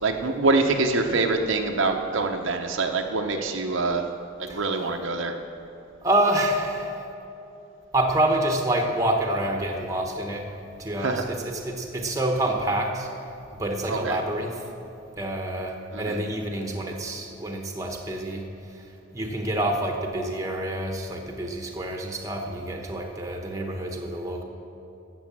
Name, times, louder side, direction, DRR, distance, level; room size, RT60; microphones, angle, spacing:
voice 1, 0.0-4.0 4.4-5.3 11.0-11.2 13.9-14.2 15.9-16.2, right 3 dB, 65° right, 4 dB, 0.8 m, -25 dB
voice 2, 4.5-4.9 6.0-7.1 7.9-10.5 10.8-13.1 13.5-14.7 15.2-24.4, right 1 dB, 15° right, 2 dB, 1.1 m, -27 dB
12.5 x 7.9 x 7.4 m, 3.0 s
head